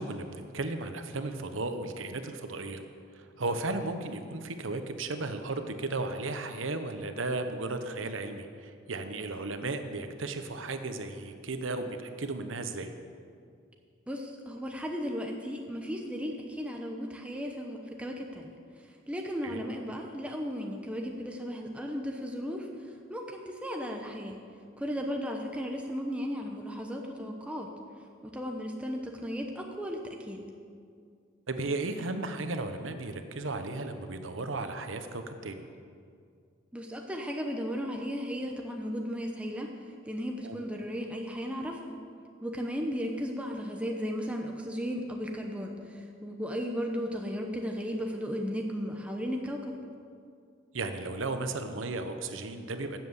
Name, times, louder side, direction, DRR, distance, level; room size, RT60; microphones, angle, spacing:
voice 1, 0.0-2.8 3.1-12.9 19.4-19.6 31.5-35.6 40.4-40.6 50.7-53.0, right 2 dB, 85° right, 8 dB, 1.0 m, -35 dB
voice 2, 14.1-18.6 19.1-22.7 23.1-24.4 24.8-27.7 28.2-30.5 36.7-39.7 40.1-42.0 42.4-49.7, equal, 5° right, 1 dB, 0.8 m, -35 dB
12.5 x 7.6 x 8.0 m, 2.3 s
head